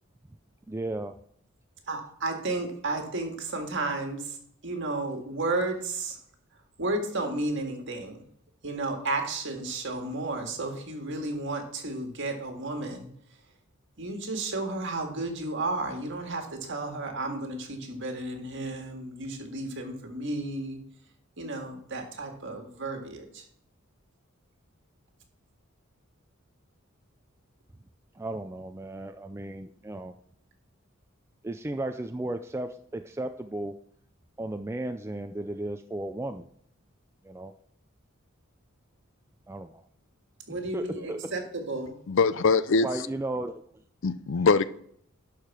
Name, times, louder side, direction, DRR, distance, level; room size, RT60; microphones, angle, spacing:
voice 1, 0.7-1.2 28.2-30.1 31.4-33.7 34.4-36.5 37.2-37.5 39.5-39.7 40.7-41.3 42.8-43.6, right 1 dB, 10° right, 7 dB, 0.3 m, -34 dB
voice 2, 1.9-4.4 4.6-6.2 6.8-8.2 8.6-13.1 14.0-20.8 21.4-23.4 40.5-42.0, right 2 dB, 60° right, 4 dB, 1.9 m, -33 dB
voice 3, 42.1-43.1 44.0-44.6, left 4 dB, 60° left, 16 dB, 0.5 m, -23 dB
11.5 x 4.8 x 5.9 m, 0.66 s
head